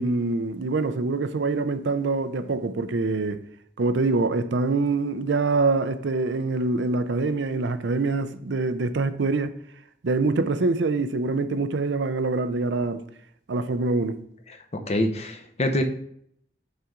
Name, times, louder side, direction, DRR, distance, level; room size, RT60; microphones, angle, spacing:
voice 1, 0.0-3.4 3.8-9.5 10.0-13.0 13.5-14.2, right 3 dB, 80° right, 0.5 m, -25 dB
voice 2, 14.5-15.8, left 1 dB, 35° left, 0.7 m, -26 dB
6.5 x 5.7 x 3.7 m
head